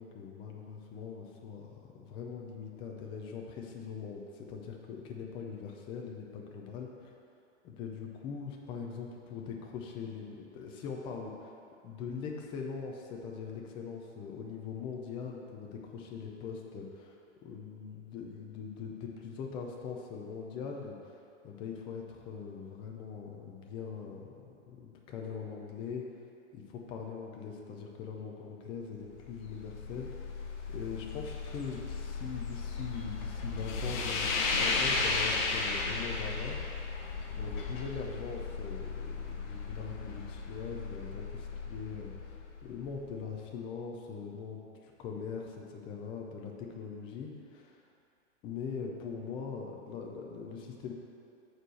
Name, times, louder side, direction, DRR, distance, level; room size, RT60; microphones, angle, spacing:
voice 1, 0.0-6.9 7.6-11.5 11.8-17.2 17.4-21.2 21.4-26.0 26.5-30.1 30.7-36.6 37.3-42.4 42.6-47.8 48.4-50.9, left 6 dB, 15° left, 0 dB, 0.5 m, -42 dB
sound 1, 29.0-43.2, left 4 dB, 40° left, 1.1 m, -35 dB
6.6 x 4.7 x 6.2 m, 2.5 s
hypercardioid pair, 140°, 38 cm